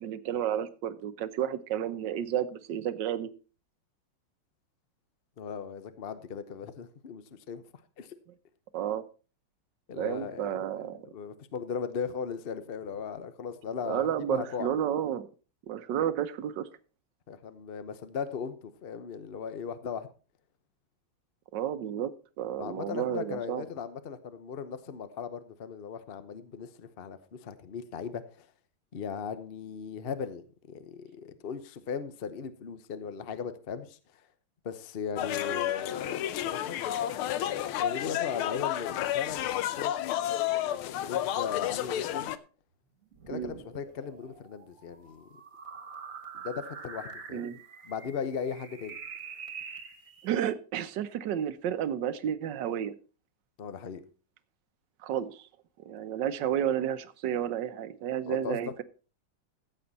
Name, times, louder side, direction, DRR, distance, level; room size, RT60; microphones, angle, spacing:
voice 1, 0.0-3.3 8.7-9.0 10.0-11.1 13.8-15.3 15.7-16.7 21.5-22.1 22.4-23.6 43.3-43.5 47.3-47.6 50.2-52.9 55.0-55.5 55.8-58.7, right 10 dB, 65° right, 12 dB, 1.3 m, -31 dB
voice 2, 5.4-7.6 8.0-8.1 9.9-10.7 11.0-14.7 17.3-20.1 22.6-28.5 28.9-34.0 34.6-36.8 37.4-39.9 40.5-42.3 43.3-45.2 46.3-49.0 53.6-54.0 58.3-58.8, left 6 dB, 65° left, 12 dB, 0.5 m, -38 dB
sound 1, 35.2-42.4, left 12 dB, 80° left, 1.6 m, -31 dB
sound 2, 43.1-50.5, right 5 dB, 40° right, 1.6 m, -45 dB
14.5 x 7.8 x 4.1 m, 0.36 s
omnidirectional pair, 2.3 m